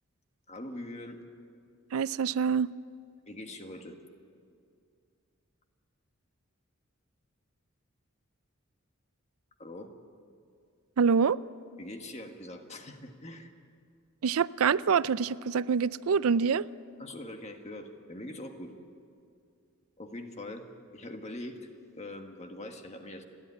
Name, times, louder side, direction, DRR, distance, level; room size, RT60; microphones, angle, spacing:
voice 1, 0.5-1.2 3.3-4.0 9.6-9.9 11.8-13.5 17.0-18.7 20.0-20.7 20.9-23.2, left 1 dB, 30° left, 5 dB, 1.5 m, -42 dB
voice 2, 1.9-2.7 11.0-11.4 14.2-16.7, right 6 dB, 85° right, 18 dB, 0.4 m, -25 dB
29.5 x 11.0 x 9.7 m, 2.3 s
head